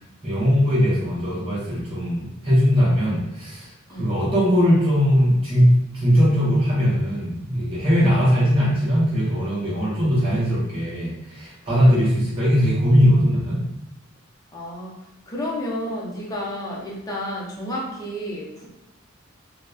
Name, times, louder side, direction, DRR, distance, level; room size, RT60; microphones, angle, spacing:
voice 1, 0.2-3.7 4.0-13.6, equal, 25° right, -8 dB, 0.8 m, -20 dB
voice 2, 14.5-15.0 15.3-18.7, left 1 dB, 20° left, -4 dB, 0.5 m, -31 dB
2.8 x 2.0 x 2.2 m, 0.88 s
head